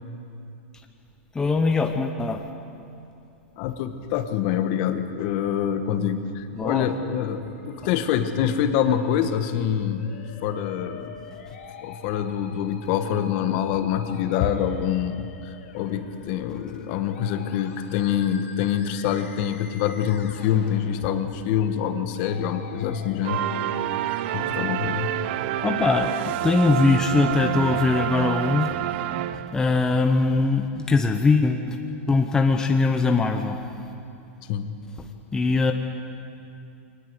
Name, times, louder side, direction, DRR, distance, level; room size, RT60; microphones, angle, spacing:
voice 1, 1.3-2.4 6.6-6.9 25.6-28.7 29.5-31.8 32.1-33.6 35.0-35.1 35.3-35.7, left 3 dB, 10° left, 4 dB, 0.9 m, -21 dB
voice 2, 3.6-10.1 10.4-11.2 11.8-23.5 24.3-25.2 34.5-34.7, left 9 dB, 45° left, 8 dB, 1.5 m, -25 dB
Musical instrument, 7.3-25.3, left 6 dB, 75° left, 3.8 m, -45 dB
sound 1, 23.2-29.8, right 13 dB, 55° right, 0.7 m, -28 dB
23.0 x 19.5 x 8.0 m, 2.6 s
supercardioid pair, 150°, 7 cm